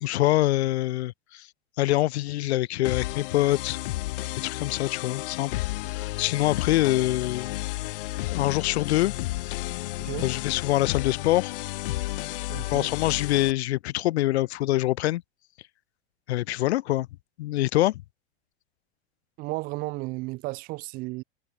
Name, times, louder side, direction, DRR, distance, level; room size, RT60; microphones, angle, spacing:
voice 1, 0.0-1.5 1.8-3.8 4.4-7.6 8.3-9.1 9.4-9.6 10.2-11.5 12.7-15.2 16.3-17.1 17.4-18.0, left 16 dB, 80° left, 0.9 m, -25 dB
sound 1, 2.8-13.5, left 18 dB, 55° left, 3.4 m, -32 dB
voice 2, 10.0-10.3 12.5-12.9 19.4-21.2, right 22 dB, 25° right, 1.2 m, -34 dB
supercardioid pair, 180°, 33 cm